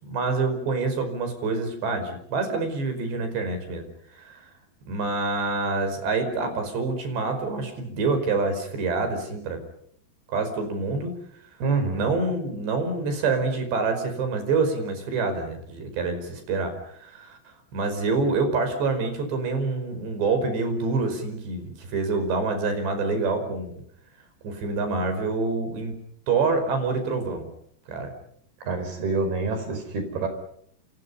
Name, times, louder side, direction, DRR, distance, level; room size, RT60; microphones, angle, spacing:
voice 1, 0.0-3.8 4.2-4.5 4.9-9.6 10.3-11.2 11.9-17.4 17.7-23.7 24.4-26.0 26.3-27.5 27.9-28.1, right 3 dB, 90° right, 7 dB, 7.3 m, -26 dB
voice 2, 11.6-12.1 28.6-30.3, right 4 dB, 65° right, 7 dB, 7.1 m, -26 dB
29.0 x 28.5 x 5.7 m, 0.66 s
omnidirectional pair, 4.8 m